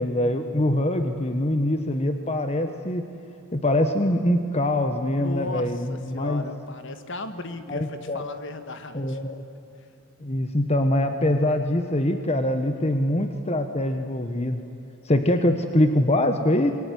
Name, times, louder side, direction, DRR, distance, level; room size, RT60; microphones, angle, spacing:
voice 1, 0.0-3.0 3.5-6.5 7.7-8.2 8.9-9.4 10.2-14.6 15.0-16.7, left 1 dB, 30° left, 7 dB, 1.2 m, -23 dB
voice 2, 5.1-9.2 9.8-9.9 12.7-13.0, left 2 dB, 55° left, 9 dB, 1.9 m, -36 dB
26.0 x 23.0 x 9.4 m, 3.0 s
head